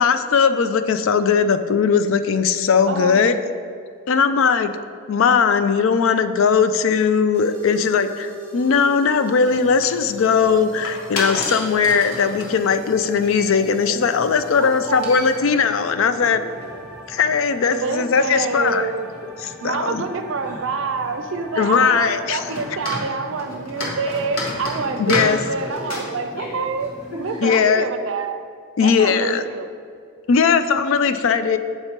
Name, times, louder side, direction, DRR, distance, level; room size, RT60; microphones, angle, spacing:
voice 1, 0.0-3.4 4.1-4.8 5.1-16.4 17.1-18.9 19.4-20.0 21.6-22.5 25.0-25.4 27.4-27.9 28.8-29.4 30.3-31.6, left 6 dB, 65° left, 10 dB, 0.4 m, -19 dB
voice 2, 2.8-3.2 14.6-15.2 17.7-19.1 19.6-26.9 27.2-28.3 28.8-29.7, right 4 dB, 60° right, 8 dB, 0.5 m, -27 dB
sound 1, 7.3-23.3, right 1 dB, 5° left, 0.7 m, -41 dB
sound 2, 9.4-27.4, left 1 dB, 85° left, 1.4 m, -33 dB
6.6 x 4.4 x 4.5 m, 2.3 s
head